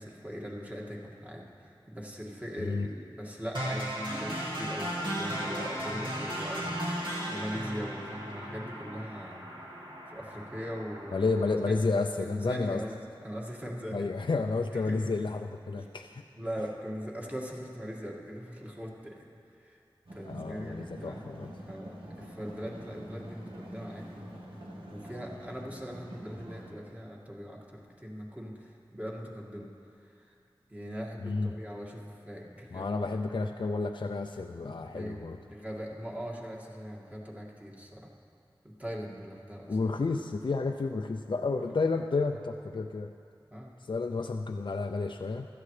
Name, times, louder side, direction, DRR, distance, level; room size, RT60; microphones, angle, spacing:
voice 1, 0.0-9.4 10.1-11.2 11.6-11.8 12.2-13.0 13.2-14.1 14.7-15.1 15.8-15.9 16.4-19.2 19.6-19.8 20.1-21.2 21.7-24.1 24.9-29.7 30.0-30.4 30.7-33.0 34.9-38.1 38.6-39.8 41.6-41.7 43.5-43.7, equal, 15° right, -2 dB, 2.1 m, -40 dB
voice 2, 2.6-2.9 11.1-12.8 13.9-16.2 20.3-21.5 31.2-31.5 32.7-35.4 39.7-43.1 43.8-45.5, left 3 dB, 60° left, 4 dB, 0.4 m, -31 dB
sound 1, 3.5-11.5, equal, 60° right, 2.3 m, -36 dB
sound 2, 20.1-26.7, equal, 80° right, 1.7 m, -45 dB
16.0 x 13.0 x 3.3 m, 2.5 s
wide cardioid pair, 40°, 9 cm